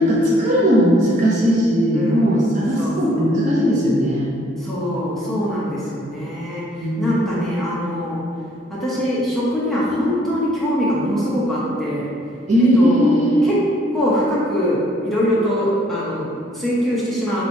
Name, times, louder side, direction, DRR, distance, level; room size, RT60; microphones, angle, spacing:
voice 1, 0.0-4.3 6.8-7.5 12.5-13.4, equal, 35° right, -5 dB, 0.6 m, -18 dB
voice 2, 1.9-3.4 4.6-8.2 8.7-12.1 12.6-13.6 13.9-17.4, equal, ahead, -9 dB, 0.7 m, -23 dB
5.2 x 3.0 x 2.7 m, 2.3 s
head